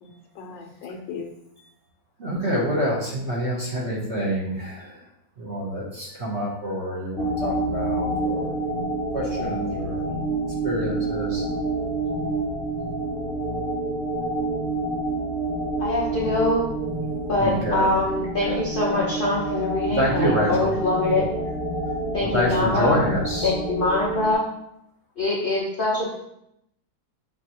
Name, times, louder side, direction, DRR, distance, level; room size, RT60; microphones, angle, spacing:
voice 1, 0.0-1.3, left 5 dB, 75° left, 3 dB, 1.3 m, -38 dB
voice 2, 2.2-5.0 5.4-8.5 9.1-10.0 10.6-11.4 17.4-17.9 20.0-20.8 21.1-21.2 22.2-23.5, equal, 45° right, -5 dB, 1.0 m, -26 dB
sound 1, 7.2-24.3, right 2 dB, ahead, 1.0 m, -28 dB
voice 3, 15.8-16.7 17.3-21.3 22.1-23.0 23.4-24.4 25.2-26.2, left 2 dB, 60° left, -6 dB, 0.5 m, -24 dB
6.1 x 3.0 x 2.8 m, 0.79 s
omnidirectional pair, 2.1 m